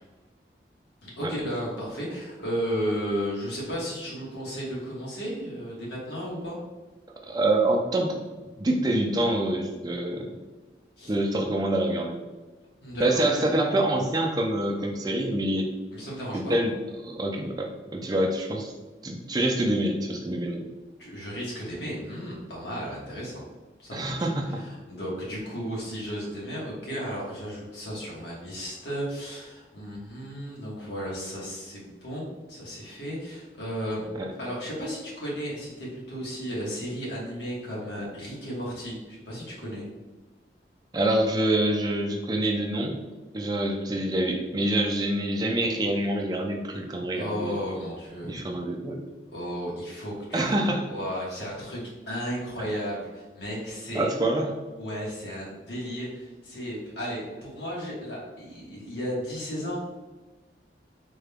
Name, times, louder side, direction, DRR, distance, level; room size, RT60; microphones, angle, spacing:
voice 1, 1.0-6.6 11.0-11.1 12.8-13.2 15.9-16.7 21.0-23.4 23.8-34.1 34.4-39.8 47.1-48.4 49.3-50.5 50.9-51.8 52.1-54.1 54.8-59.8, equal, 80° left, -5 dB, 1.3 m, -34 dB
voice 2, 7.3-8.2 8.6-10.4 11.1-12.2 13.0-15.7 16.3-18.7 19.0-20.7 23.9-24.6 34.2-34.3 40.9-42.9 43.3-47.5 48.2-49.0 50.3-50.9 52.6-52.7 53.9-54.5, right 1 dB, 20° right, 2 dB, 0.4 m, -26 dB
3.7 x 2.2 x 3.4 m, 1.2 s
head